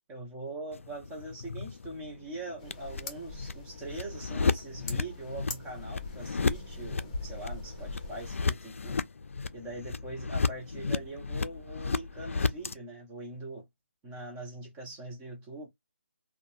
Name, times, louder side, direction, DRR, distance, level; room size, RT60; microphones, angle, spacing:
voice 1, 0.1-9.0 9.5-13.6 14.0-15.7, right 2 dB, 10° right, 0.6 m, -42 dB
sound 1, 0.7-12.7, left 4 dB, 80° left, 0.3 m, -34 dB
sound 2, 2.6-8.3, left 2 dB, 30° left, 0.8 m, -43 dB
2.8 x 2.1 x 2.5 m
hypercardioid pair, 165°, 7 cm